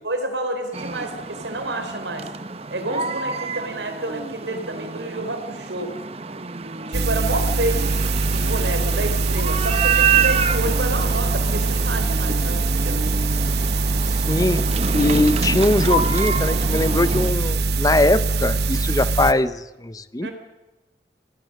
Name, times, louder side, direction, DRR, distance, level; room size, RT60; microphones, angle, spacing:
voice 1, 0.0-2.3 2.7-5.9 6.9-7.9 8.3-13.0 20.2-20.3, right 2 dB, 85° right, 6 dB, 4.0 m, -29 dB
sound 1, 0.7-17.3, right 5 dB, 35° right, 0.9 m, -27 dB
sound 2, 6.9-19.3, right 3 dB, 70° right, 1.0 m, -22 dB
voice 2, 14.3-14.7 14.9-20.3, left 1 dB, 20° left, 14 dB, 0.7 m, -21 dB
26.0 x 18.0 x 6.5 m, 1.1 s
head